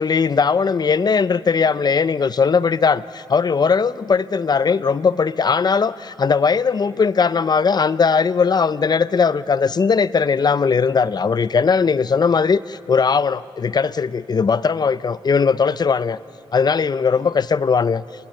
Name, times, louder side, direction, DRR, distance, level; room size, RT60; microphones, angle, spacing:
voice 1, 0.0-16.2 16.5-18.0, left 5 dB, 45° left, 17 dB, 0.6 m, -19 dB
29.0 x 27.5 x 6.6 m, 2.7 s
cardioid pair, 85°, 10 cm